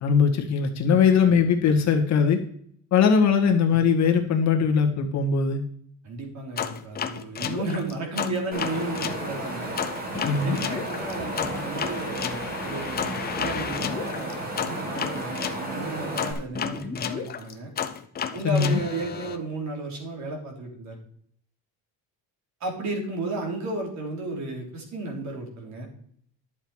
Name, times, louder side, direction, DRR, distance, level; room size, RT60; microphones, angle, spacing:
voice 1, 0.0-2.4 2.9-5.6 10.2-10.6 18.4-18.8, left 6 dB, 45° left, 3 dB, 1.8 m, -20 dB
voice 2, 6.0-9.8 10.4-17.7 18.3-21.0 22.6-25.9, right 2 dB, 50° right, 1 dB, 3.4 m, -33 dB
sound 1, 6.6-9.2 9.8-15.6 16.2-19.4, left 8 dB, 25° left, 0.7 m, -32 dB
Wind, 8.5-16.3, right 1 dB, 25° right, 2.9 m, -33 dB
11.5 x 7.3 x 4.8 m, 0.63 s
cardioid pair, 160°, 37 cm